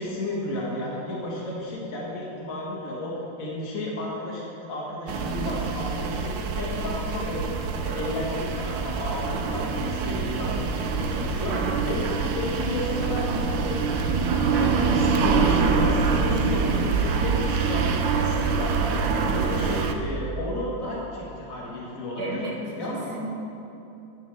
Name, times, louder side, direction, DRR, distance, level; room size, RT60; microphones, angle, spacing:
voice 1, 0.0-7.5 7.8-11.5 11.8-14.1 14.5-19.0 19.3-22.4 22.8-23.1, left 1 dB, 45° left, -5 dB, 2.0 m, -33 dB
sound 1, 5.1-19.9, right 5 dB, 80° right, 1.4 m, -25 dB
voice 2, 22.2-22.5 22.8-23.3, right 2 dB, 60° right, -2 dB, 2.0 m, -34 dB
11.0 x 10.5 x 3.5 m, 2.9 s
omnidirectional pair, 2.0 m